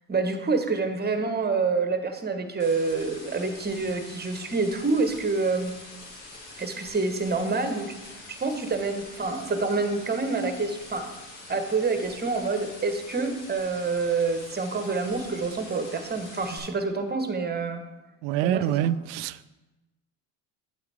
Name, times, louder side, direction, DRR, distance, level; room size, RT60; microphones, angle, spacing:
voice 1, 0.1-5.8 6.6-7.9 8.3-11.1 11.5-17.8 18.4-18.9, right 4 dB, 20° right, 1.2 m, -27 dB
sound 1, 2.6-16.6, left 2 dB, 30° left, 3.4 m, -45 dB
voice 2, 18.2-19.5, right 12 dB, 70° right, 0.5 m, -26 dB
9.0 x 8.0 x 3.4 m
hypercardioid pair, 75°, 49 cm